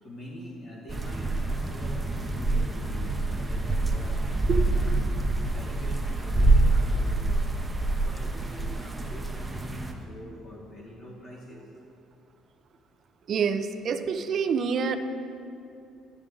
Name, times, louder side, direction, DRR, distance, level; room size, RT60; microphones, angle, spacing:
voice 1, 0.0-5.1 5.5-7.7 8.0-11.7, left 1 dB, 55° left, -5 dB, 1.8 m, -44 dB
sound 1, 0.9-9.9, right 2 dB, 15° right, 0.7 m, -26 dB
voice 2, 13.3-15.0, right 6 dB, 50° right, 8 dB, 0.5 m, -27 dB
12.0 x 6.2 x 3.8 m, 2.7 s
cardioid pair, 120°, 0 cm